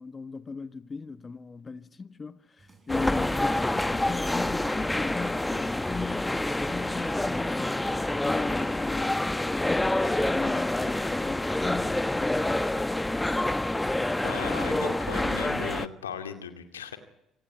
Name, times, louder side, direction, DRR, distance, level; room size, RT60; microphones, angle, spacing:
voice 1, 0.0-13.2, left 4 dB, 30° left, 1.3 m, -38 dB
sound 1, 2.6-14.9, right 4 dB, 30° right, 7.8 m, -56 dB
sound 2, 2.9-15.9, left 1 dB, 10° left, 1.3 m, -27 dB
voice 2, 14.2-17.0, left 7 dB, 90° left, 2.3 m, -37 dB
26.5 x 18.5 x 9.4 m
hypercardioid pair, 55°, 0 cm